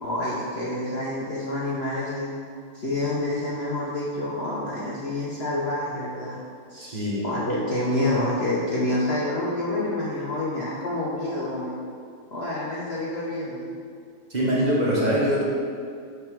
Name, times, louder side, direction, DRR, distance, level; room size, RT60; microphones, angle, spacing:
voice 1, 0.0-2.3 2.7-6.4 6.7-11.8 12.3-13.7, left 1 dB, 65° left, -6 dB, 0.6 m, -28 dB
voice 2, 6.9-7.3 14.3-15.4, equal, 40° right, -5 dB, 0.6 m, -23 dB
6.5 x 3.5 x 5.9 m, 2.3 s
omnidirectional pair, 2.2 m